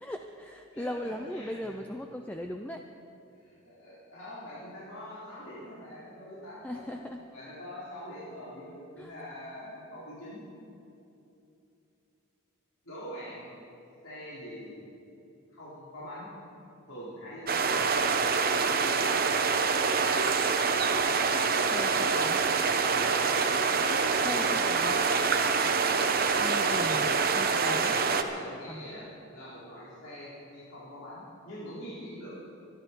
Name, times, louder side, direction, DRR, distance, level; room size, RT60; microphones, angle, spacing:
voice 1, 0.0-2.8 6.6-7.2 9.0-9.1 21.6-22.4 24.2-25.1 26.3-28.0 28.7-28.8, equal, 5° left, 4 dB, 0.5 m, -38 dB
voice 2, 0.7-1.8 3.4-10.4 12.8-13.5 14.0-14.9 15.5-16.3 16.9-17.7 24.2-24.6 27.6-32.3, equal, 85° left, -10 dB, 4.3 m, -44 dB
sound 1, 17.5-28.2, right 5 dB, 45° right, 0.8 m, -26 dB
25.5 x 11.0 x 4.6 m, 2.8 s
head